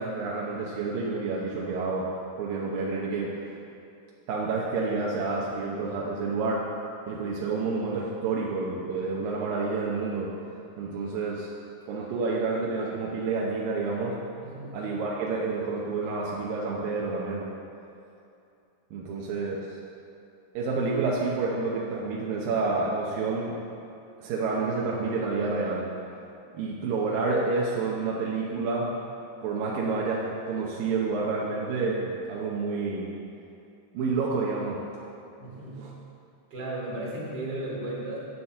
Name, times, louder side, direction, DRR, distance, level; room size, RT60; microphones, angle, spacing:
voice 1, 0.0-3.4 4.3-6.7 7.1-10.4 10.8-11.5 11.9-14.2 14.7-17.5 18.9-19.6 20.6-23.6 24.2-25.9 26.5-28.9 29.4-33.1 33.9-34.9 35.8-35.9, right 4 dB, 80° right, -4 dB, 2.7 m, -29 dB
voice 2, 14.4-14.8 19.0-19.1 35.4-35.9 36.5-38.2, right 1 dB, 35° right, -6 dB, 3.2 m, -35 dB
8.6 x 6.9 x 7.8 m, 2.6 s
omnidirectional pair, 4.0 m